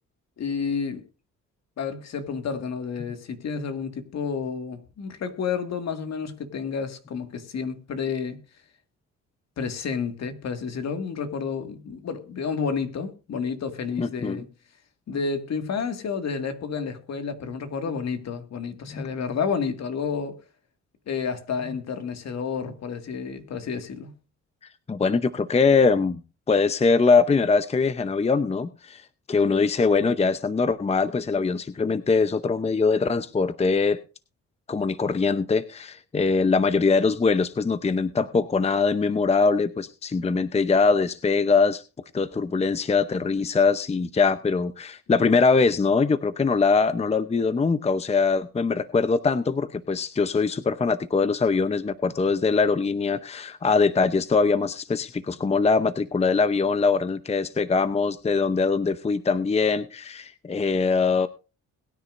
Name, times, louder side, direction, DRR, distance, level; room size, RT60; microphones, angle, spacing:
voice 1, 0.4-1.0 1.8-8.4 9.6-14.5 15.1-20.4 21.1-24.1, left 5 dB, 60° left, 2.0 m, -30 dB
voice 2, 14.0-14.4 18.9-19.1 24.9-26.2 26.5-29.0 29.3-34.0 34.7-41.8 42.1-61.3, left 4 dB, 20° left, 0.7 m, -22 dB
21.5 x 9.8 x 2.6 m
cardioid pair, 90°, 30 cm